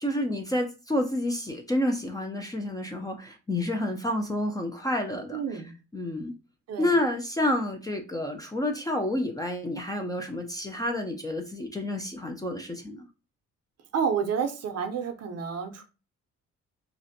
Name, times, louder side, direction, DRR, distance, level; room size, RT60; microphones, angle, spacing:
voice 1, 0.0-5.6 5.9-6.3 6.8-13.1, left 1 dB, 15° left, 0.3 m, -29 dB
voice 2, 5.3-5.7 6.7-6.9 13.9-15.8, right 6 dB, 55° right, 0.5 m, -29 dB
2.5 x 2.1 x 2.6 m
cardioid pair, 90°, 30 cm